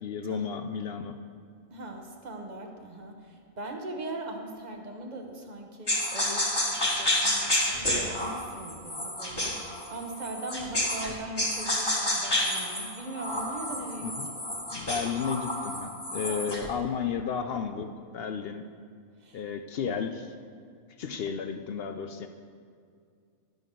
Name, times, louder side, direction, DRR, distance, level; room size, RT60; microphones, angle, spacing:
voice 1, 0.0-1.2 14.0-14.3 14.7-18.7 19.3-20.3 21.0-22.3, left 6 dB, 65° left, 8 dB, 0.6 m, -33 dB
voice 2, 1.7-14.4 16.3-16.6 19.2-19.4 21.0-21.1, right 2 dB, 35° right, 3 dB, 1.0 m, -40 dB
sound 1, 5.9-11.1 11.4-16.7, left 1 dB, 20° left, 1.4 m, -30 dB
12.0 x 10.5 x 3.8 m, 2.2 s
omnidirectional pair, 1.5 m